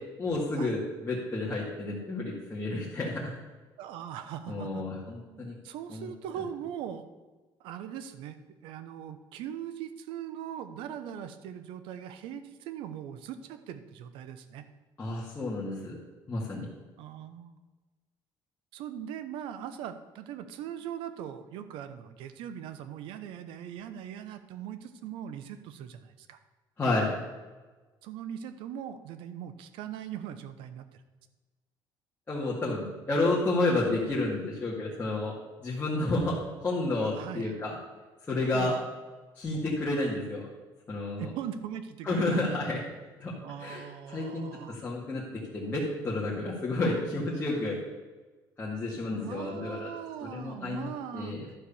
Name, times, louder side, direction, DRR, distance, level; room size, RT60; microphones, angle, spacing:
voice 1, 0.2-3.4 4.5-5.5 5.9-6.1 15.0-16.0 16.3-16.7 26.8-27.1 32.3-35.3 35.6-36.4 36.6-37.8 38.2-38.7 39.4-40.5 40.9-41.3 42.0-42.8 43.2-43.3 43.6-45.2 45.5-47.8 48.6-49.9 50.2-50.9 51.1-51.5, left 2 dB, 20° left, -6 dB, 1.9 m, -30 dB
voice 2, 3.8-4.8 5.3-7.0 7.6-8.4 8.6-14.7 17.0-17.6 18.7-26.4 28.0-31.0 37.1-37.6 38.5-38.9 41.2-42.4 43.4-44.8 49.1-51.5, right 9 dB, 85° right, 11 dB, 0.8 m, -40 dB
12.0 x 4.8 x 7.0 m, 1.3 s
cardioid pair, 135°, 9 cm